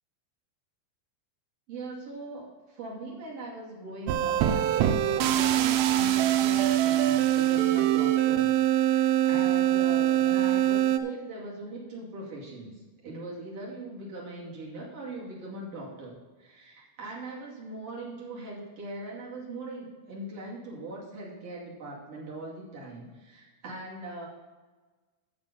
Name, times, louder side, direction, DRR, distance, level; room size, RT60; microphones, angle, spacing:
voice 1, 1.7-24.3, right 2 dB, 40° right, -5 dB, 2.5 m, -40 dB
sound 1, 4.1-11.0, right 12 dB, 85° right, 3.2 m, -23 dB
9.0 x 6.8 x 7.0 m, 1.3 s
omnidirectional pair, 5.8 m